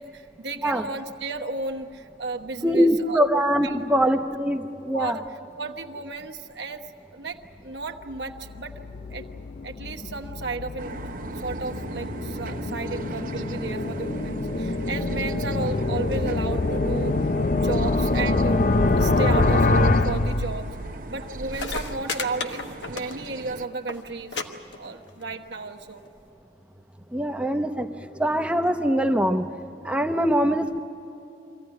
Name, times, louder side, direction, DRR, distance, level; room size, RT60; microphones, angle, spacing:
voice 1, 0.0-3.2 3.6-3.8 4.9-5.2 5.6-8.7 9.1-9.3 9.6-10.9 11.4-17.2 17.5-18.6 18.9-20.7 21.1-24.4 24.7-26.0, right 3 dB, 75° right, 3 dB, 1.1 m, -33 dB
voice 2, 2.6-5.2 27.1-27.9 28.2-29.5 29.8-30.8, equal, 5° right, 5 dB, 0.8 m, -22 dB
sound 1, 8.1-21.0, left 2 dB, 45° left, 0.5 m, -25 dB
sound 2, 10.8-23.7, right 2 dB, 50° right, 0.7 m, -39 dB
sound 3, 21.2-21.3 21.5-23.4 23.7-24.0 24.3-24.4 24.7-25.2 26.1-26.2, left 4 dB, 85° left, 1.3 m, -32 dB
24.0 x 15.5 x 9.8 m, 2.9 s
head